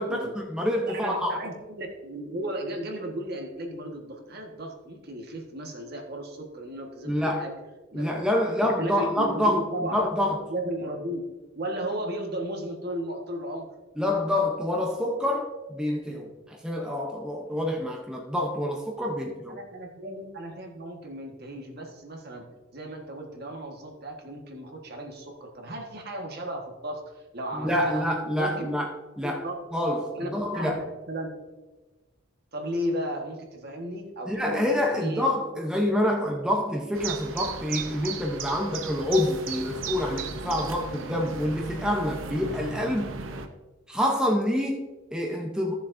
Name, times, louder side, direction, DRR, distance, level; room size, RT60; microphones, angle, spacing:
voice 1, 0.0-1.4 7.1-7.5 7.9-9.6 9.9-10.4 14.0-19.6 27.5-28.9 29.2-29.4 29.7-30.8 34.3-43.1 43.9-45.7, left 1 dB, 5° right, 0 dB, 0.7 m, -27 dB
voice 2, 0.9-7.5 7.9-8.2 8.6-10.0 10.5-11.2 11.5-13.7 19.5-22.5 22.7-28.1 28.3-28.7 29.2-29.6 30.1-31.3 32.5-35.3, right 1 dB, 50° right, 2 dB, 1.5 m, -35 dB
sound 1, 36.9-43.5, right 5 dB, 85° right, 0.8 m, -36 dB
14.5 x 7.0 x 2.6 m, 1.2 s
head